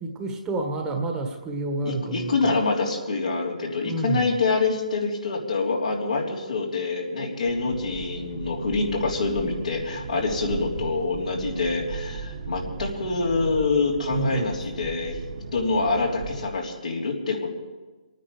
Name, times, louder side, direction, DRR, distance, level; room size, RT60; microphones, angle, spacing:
voice 1, 0.0-2.5 3.8-4.3 14.1-14.6, right 2 dB, 15° right, 3 dB, 1.5 m, -29 dB
voice 2, 1.8-15.2 15.5-17.5, left 3 dB, 80° left, -1 dB, 3.3 m, -26 dB
sound 1, 7.5-16.5, right 4 dB, 60° right, 2.0 m, -37 dB
26.0 x 9.4 x 5.1 m, 1.3 s
hypercardioid pair, 145°, 4 cm